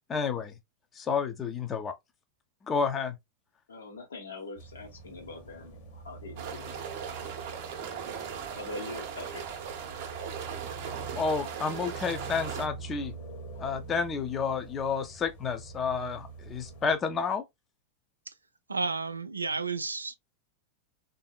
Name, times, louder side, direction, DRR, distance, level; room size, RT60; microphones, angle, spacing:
voice 1, 0.1-0.5 1.0-1.9 2.6-3.2 11.2-13.1 13.6-17.4, left 5 dB, 25° left, 0.6 m, -30 dB
voice 2, 3.7-6.9 7.2-7.6 8.2-9.5 9.8-9.9 13.5-13.6, left 3 dB, 70° left, 1.2 m, -44 dB
sound 1, 4.6-17.0, right 4 dB, 45° left, 1.1 m, -45 dB
sound 2, 6.4-12.7, right 7 dB, 50° right, 0.7 m, -38 dB
voice 3, 18.7-20.1, right 4 dB, 80° right, 0.3 m, -32 dB
3.4 x 2.7 x 2.2 m
figure-of-eight pair, 90°, 0 cm